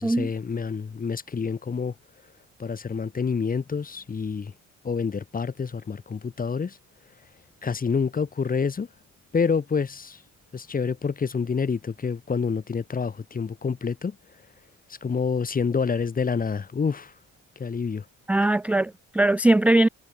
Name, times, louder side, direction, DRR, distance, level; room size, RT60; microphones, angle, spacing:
voice 1, 0.0-1.9 2.6-4.5 4.8-6.8 7.6-8.9 9.3-10.2 10.5-14.2 14.9-17.1 17.6-18.0 18.4-18.5, left 5 dB, 30° left, 1.1 m, -27 dB
voice 2, 18.3-19.9, right 2 dB, 5° right, 0.3 m, -20 dB
cardioid pair, 90°, 30 cm